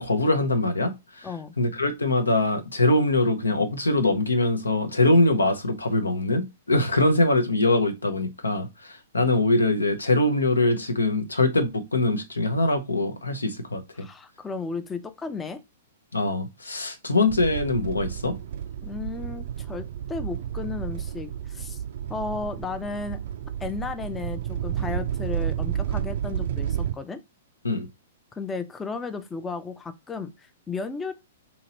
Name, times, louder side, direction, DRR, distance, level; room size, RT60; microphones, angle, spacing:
voice 1, 0.0-1.3 1.6-14.1 16.1-18.4 27.6-27.9, left 2 dB, 85° left, 0.7 m, -23 dB
voice 2, 1.2-1.5 14.0-15.6 18.8-21.8 22.1-23.2 23.6-27.2 28.3-31.1, left 4 dB, 15° left, 0.4 m, -34 dB
sound 1, 17.3-27.0, right 10 dB, 60° right, 0.3 m, -31 dB
2.8 x 2.8 x 4.1 m
hypercardioid pair, 115°, 0 cm